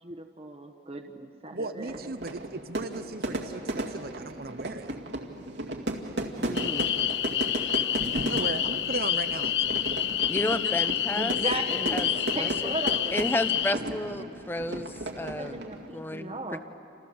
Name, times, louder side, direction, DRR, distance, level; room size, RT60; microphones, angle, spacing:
voice 1, 0.0-2.1 11.2-13.3 15.4-16.6, right 2 dB, 35° right, 3 dB, 1.2 m, -36 dB
voice 2, 1.5-5.0 8.2-9.8 10.6-10.7, right 3 dB, 55° right, 9 dB, 0.9 m, -37 dB
Fire / Fireworks, 1.9-15.9, right 1 dB, 80° right, 2.2 m, -35 dB
voice 3, 6.4-7.0 10.3-11.4 11.7-12.7 13.1-15.6 15.9-16.6, left 1 dB, 10° left, 10 dB, 1.0 m, -32 dB
sound 1, 6.5-13.7, left 11 dB, 75° left, 0.6 m, -28 dB
29.0 x 28.0 x 7.0 m, 2.7 s
head